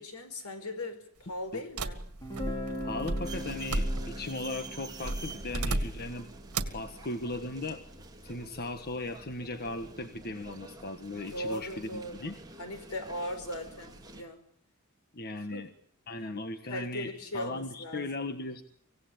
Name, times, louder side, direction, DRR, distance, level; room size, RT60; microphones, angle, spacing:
voice 1, 0.0-2.0 11.3-14.4 15.4-15.7 16.6-18.1, left 1 dB, 80° left, 8 dB, 4.7 m, -39 dB
sound 1, 1.8-4.3 5.0-6.2 6.5-6.9, right 2 dB, 80° right, 2.0 m, -34 dB
Guitar, 2.2-8.0, equal, 20° left, 3.8 m, -42 dB
voice 2, 2.8-6.3 6.7-7.8 8.2-12.3 15.1-15.7 16.1-18.6, left 2 dB, 45° left, 8 dB, 1.5 m, -37 dB
sound 2, 3.2-14.2, right 3 dB, 20° right, 3.1 m, -48 dB
25.5 x 17.5 x 8.8 m, 0.64 s
head